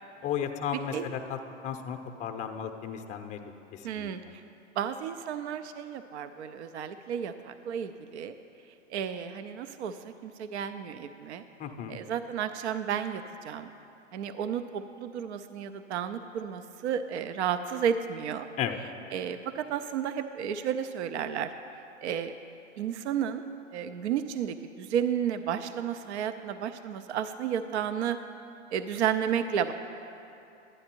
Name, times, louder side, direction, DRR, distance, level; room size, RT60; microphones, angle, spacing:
voice 1, 0.2-1.4 1.6-3.4 3.7-4.1 11.6-12.0 18.6-18.8, left 8 dB, 20° left, 6 dB, 0.6 m, -34 dB
voice 2, 3.8-4.2 4.8-8.3 8.9-11.4 11.9-13.7 14.1-18.5 19.1-21.5 22.0-22.3 22.8-23.4 23.7-28.2 28.7-29.7, right 8 dB, 65° right, 10 dB, 0.6 m, -32 dB
11.5 x 10.0 x 4.5 m, 2.8 s
hypercardioid pair, 115°, 37 cm